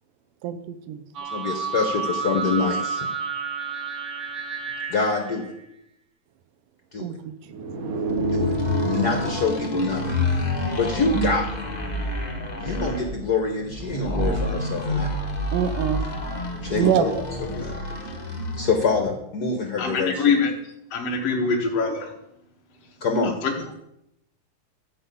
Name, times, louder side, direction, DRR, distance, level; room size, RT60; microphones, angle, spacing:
voice 1, 0.4-1.0 7.0-7.3 8.2-8.5 15.5-16.1 16.8-17.2, right 9 dB, 85° right, 10 dB, 2.4 m, -25 dB
sound 1, 1.2-5.4 7.5-9.3, right 3 dB, 65° right, 2.4 m, -29 dB
voice 2, 1.3-3.1 4.9-5.5 6.9-7.1 8.3-8.5 8.8-10.2 10.7-11.6 12.6-15.1 16.6-17.1 17.5-17.7 18.6-20.3 23.0-23.6, left 4 dB, 80° left, 3 dB, 0.8 m, -26 dB
sound 2, 8.1-18.9, left 1 dB, 25° left, 0.9 m, -28 dB
voice 3, 19.8-20.5 20.9-22.1 23.4-23.5, left 5 dB, 55° left, -2 dB, 2.4 m, -23 dB
13.5 x 5.5 x 8.4 m, 0.82 s
omnidirectional pair, 3.7 m